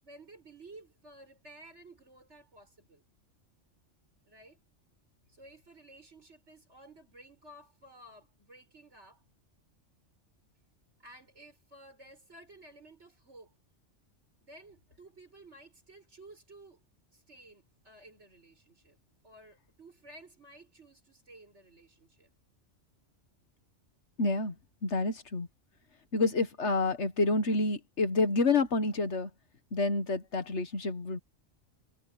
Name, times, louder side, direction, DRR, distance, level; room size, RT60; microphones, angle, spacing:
voice 1, 0.0-3.0 4.2-4.6 5.3-9.2 11.0-13.5 14.4-16.8 17.1-19.0 19.2-22.3, right 1 dB, 65° right, 6.5 m, -54 dB
voice 2, 24.2-24.6 24.8-25.5 26.1-29.3 29.7-31.2, left 3 dB, 65° left, 1.7 m, -28 dB
omnidirectional pair, 1.3 m